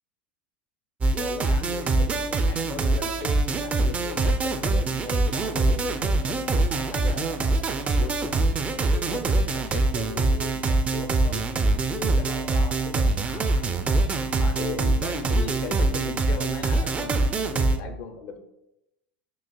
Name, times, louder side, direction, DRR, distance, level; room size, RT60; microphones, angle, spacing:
sound 1, 1.0-17.8, right 2 dB, 25° right, 0.3 m, -24 dB
voice 1, 1.1-7.5 7.9-11.4 11.9-18.4, left 5 dB, 55° left, 6 dB, 0.5 m, -38 dB
6.1 x 2.4 x 2.2 m, 0.89 s
hypercardioid pair, 105°, 6 cm